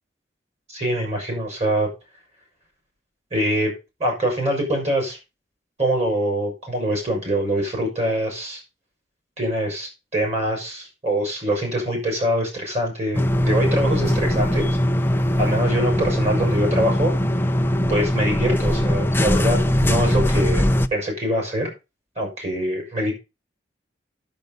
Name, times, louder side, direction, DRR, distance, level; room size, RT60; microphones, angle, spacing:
voice 1, 0.7-1.9 3.3-3.7 4.0-5.2 5.8-8.6 9.4-14.7 15.4-17.2 17.9-21.7 22.2-23.1, right 1 dB, 40° right, 1 dB, 5.7 m, -24 dB
sound 1, 13.1-20.9, left 1 dB, 10° left, 0.6 m, -21 dB
12.0 x 6.5 x 5.3 m, 0.28 s
head